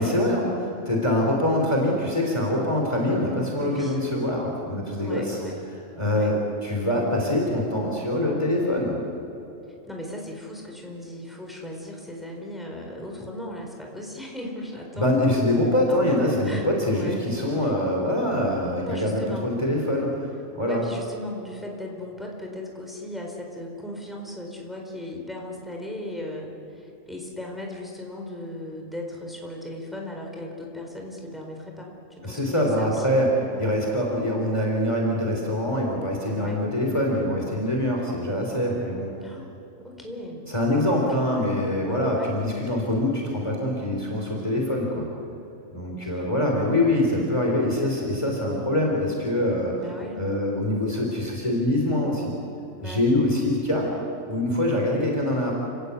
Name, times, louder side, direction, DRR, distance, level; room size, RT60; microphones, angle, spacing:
voice 1, 0.0-5.4 6.0-9.0 14.9-20.2 20.5-20.9 32.2-33.3 33.6-39.1 40.5-45.1 45.7-49.7 50.2-52.3 52.8-53.9 54.3-55.5, left 1 dB, 20° left, -1 dB, 3.6 m, -24 dB
voice 2, 3.6-4.0 5.0-5.5 6.1-6.3 9.9-15.2 16.1-16.2 16.4-17.3 17.6-17.7 18.8-19.5 20.6-33.2 33.5-33.7 36.3-36.6 39.2-39.5 39.8-40.4 40.9-41.3 41.8-42.3 46.0-46.3 49.8-50.2 52.8-53.1, left 1 dB, ahead, 0 dB, 4.5 m, -37 dB
30.0 x 18.5 x 8.3 m, 2.9 s
omnidirectional pair, 1.3 m